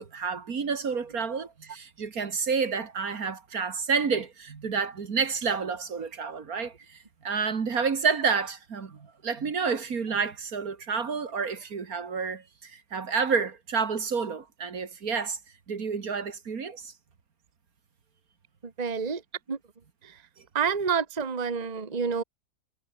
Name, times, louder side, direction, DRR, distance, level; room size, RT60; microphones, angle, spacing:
voice 1, 0.0-15.4 15.7-16.9 20.4-20.5, right 5 dB, 65° right, 2.3 m, -29 dB
voice 2, 18.6-19.2 19.5-19.6 20.0-20.2 20.5-22.2, right 6 dB, 25° right, 1.4 m, -28 dB
omnidirectional pair, 1.7 m